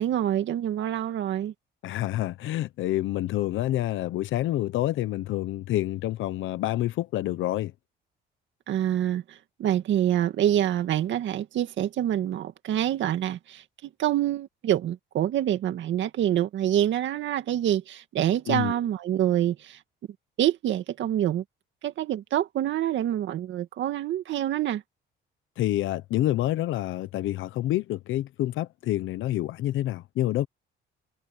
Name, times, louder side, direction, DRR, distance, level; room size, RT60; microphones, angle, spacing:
voice 1, 0.0-1.5 8.7-13.6 14.0-19.8 20.4-21.4 21.8-24.8, right 11 dB, 70° right, 2.1 m, -26 dB
voice 2, 1.8-7.7 18.5-18.8 25.6-30.5, left 14 dB, 75° left, 0.9 m, -28 dB
cardioid pair, 120°, 20 cm